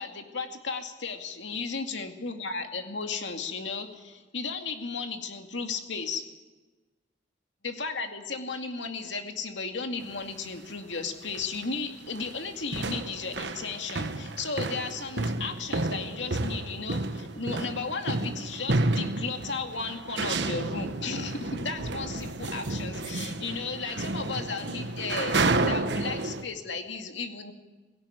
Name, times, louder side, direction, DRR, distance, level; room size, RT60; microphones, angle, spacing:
voice 1, 0.0-6.2 7.6-27.5, left 4 dB, 75° left, 5 dB, 2.4 m, -35 dB
sound 1, 10.0-10.2 11.0-11.1 11.3-11.7 12.0-26.4, right 2 dB, 70° right, 1.3 m, -31 dB
18.5 x 17.5 x 9.2 m, 1.2 s
head